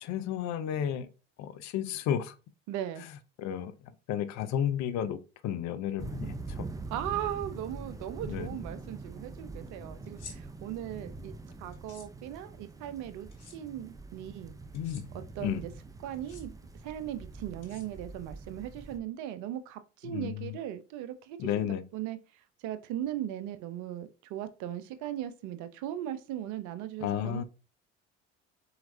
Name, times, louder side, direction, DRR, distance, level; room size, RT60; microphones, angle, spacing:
voice 1, 0.0-1.1 1.4-2.3 3.4-3.7 4.1-6.7 8.2-8.5 14.7-15.1 15.4-15.6 20.0-20.6 21.4-21.8 27.0-27.4, left 10 dB, 55° left, 0.6 m, -32 dB
voice 2, 2.7-3.1 6.9-11.3 11.6-14.5 15.1-15.7 16.0-16.5 16.8-21.7 21.9-22.2 22.6-27.4, right 11 dB, 60° right, 0.7 m, -38 dB
sound 1, 6.0-19.0, right 3 dB, 10° right, 0.5 m, -44 dB
sound 2, 10.1-10.4 11.7-12.1 13.3-13.6 14.7-15.0 16.1-16.4 17.6-18.2, left 5 dB, 80° left, 1.1 m, -49 dB
4.3 x 3.9 x 2.6 m
hypercardioid pair, 65°, 34 cm